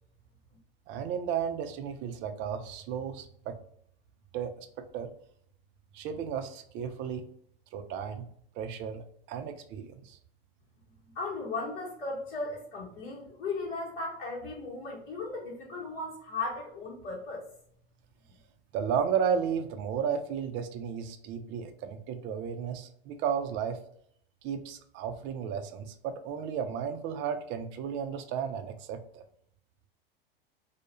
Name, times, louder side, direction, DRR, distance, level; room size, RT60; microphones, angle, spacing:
voice 1, 0.9-3.6 4.3-5.1 5.9-7.3 7.7-8.3 8.5-10.2 18.7-23.8 24.4-29.2, right 7 dB, 40° right, 7 dB, 0.4 m, -33 dB
voice 2, 11.1-17.5, left 3 dB, 60° left, -5 dB, 1.0 m, -36 dB
2.3 x 2.1 x 2.9 m, 0.65 s
hypercardioid pair, 100°, 29 cm